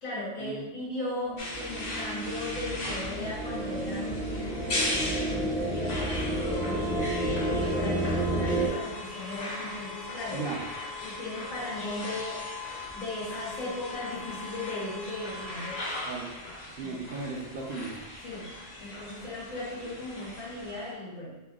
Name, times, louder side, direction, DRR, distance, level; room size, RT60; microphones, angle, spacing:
voice 1, 0.0-7.0 7.5-10.4 11.0-12.4 12.9-15.9 16.8-16.9 18.2-18.5 18.8-21.4, left 2 dB, 90° left, -7 dB, 1.6 m, -37 dB
sound 1, 1.1-8.7, right 1 dB, 5° right, 0.3 m, -31 dB
sound 2, 1.4-20.9, left 2 dB, 45° left, 0.6 m, -38 dB
voice 2, 16.8-17.9 19.8-19.9, right 4 dB, 60° right, -2 dB, 0.6 m, -36 dB
3.7 x 3.3 x 2.3 m, 1.1 s
omnidirectional pair, 1.3 m